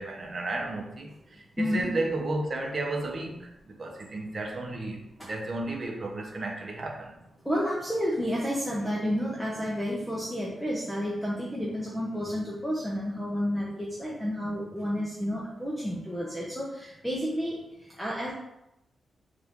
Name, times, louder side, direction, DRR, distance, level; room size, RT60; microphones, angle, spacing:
voice 1, 0.0-7.2, right 2 dB, 40° right, 1 dB, 0.7 m, -33 dB
voice 2, 1.6-1.9 7.5-17.6 18.0-18.3, equal, 5° left, -6 dB, 0.7 m, -30 dB
4.4 x 2.5 x 3.5 m, 0.88 s
wide cardioid pair, 120°, 0 cm